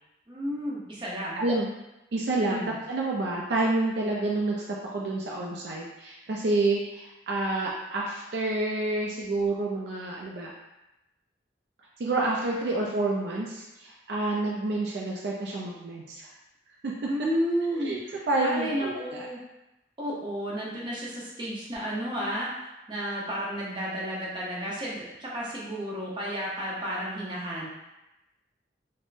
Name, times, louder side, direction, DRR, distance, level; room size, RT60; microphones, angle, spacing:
voice 1, 0.3-1.4 2.5-2.7 17.0-19.4 20.0-27.7, equal, 25° right, -6 dB, 0.7 m, -32 dB
voice 2, 1.3-1.7 2.1-10.5 12.0-16.3 16.8-16.9 17.7-18.0 18.3-19.3, right 2 dB, 65° right, -3 dB, 0.4 m, -28 dB
3.4 x 2.1 x 2.5 m, 0.96 s
head